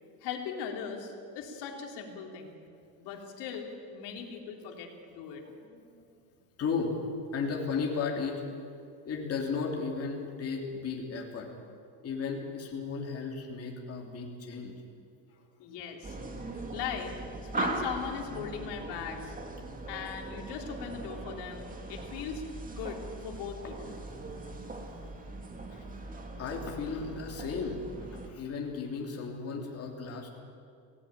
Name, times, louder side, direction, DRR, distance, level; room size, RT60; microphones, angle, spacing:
voice 1, 0.2-2.6 3.0-5.4 15.6-17.2 17.4-19.4 19.9-24.0, left 6 dB, 60° left, 1 dB, 3.6 m, -39 dB
voice 2, 5.4-6.0 6.6-6.9 7.3-8.4 9.0-11.5 12.0-14.8 15.3-15.4 23.7-23.8 24.1-24.2 25.0-25.1 25.7-25.8 26.4-30.3, left 5 dB, 30° left, 0 dB, 3.0 m, -35 dB
sound 1, 16.0-28.3, right 2 dB, 20° right, 2.0 m, -40 dB
17.5 x 17.0 x 9.0 m, 2.4 s
cardioid pair, 145°, 45 cm